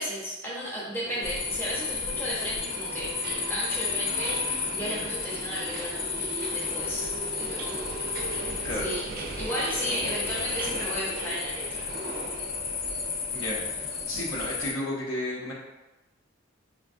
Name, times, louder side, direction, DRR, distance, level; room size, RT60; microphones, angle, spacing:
voice 1, 0.0-7.1 7.4-8.0 8.4-9.1 9.4-11.8, equal, 10° left, -6 dB, 0.6 m, -34 dB
Subway metro underground, 1.0-14.7, right 2 dB, 45° right, 0.4 m, -38 dB
sound 1, 1.2-14.7, left 5 dB, 50° left, 0.3 m, -33 dB
voice 2, 13.3-15.5, left 1 dB, 80° left, -4 dB, 0.8 m, -33 dB
4.5 x 2.2 x 2.6 m, 1.1 s
head